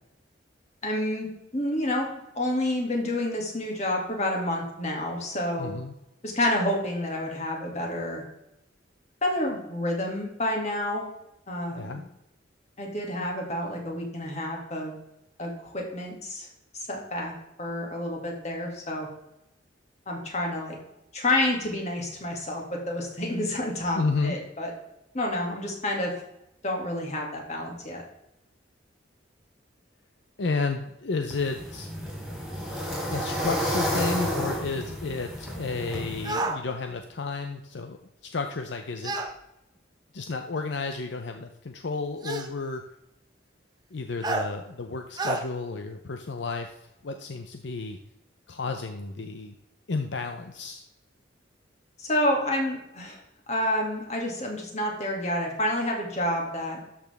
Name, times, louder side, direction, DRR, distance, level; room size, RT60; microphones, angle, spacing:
voice 1, 0.8-1.3 1.5-2.1 2.3-5.7 6.2-8.2 9.2-11.1 11.5-12.0 12.8-14.9 15.4-16.5 16.9-17.3 17.6-19.1 20.1-20.8 21.1-24.7 25.1-26.1 26.6-28.0 52.0-53.2 53.5-56.8, left 1 dB, 40° left, 0 dB, 2.4 m, -29 dB
voice 2, 5.6-5.9 11.7-12.0 23.9-24.4 30.4-31.9 33.1-39.2 40.1-42.9 43.9-48.0 48.5-49.6 49.9-50.8, left 4 dB, 70° left, 5 dB, 0.6 m, -32 dB
sound 1, 31.3-36.3, equal, 5° left, 3.6 m, -31 dB
sound 2, 36.2-36.6 39.0-39.3 40.6-40.7 42.2-42.5 44.2-44.5 45.2-45.4, right 2 dB, 20° right, 0.9 m, -29 dB
12.5 x 6.0 x 3.5 m, 0.85 s
head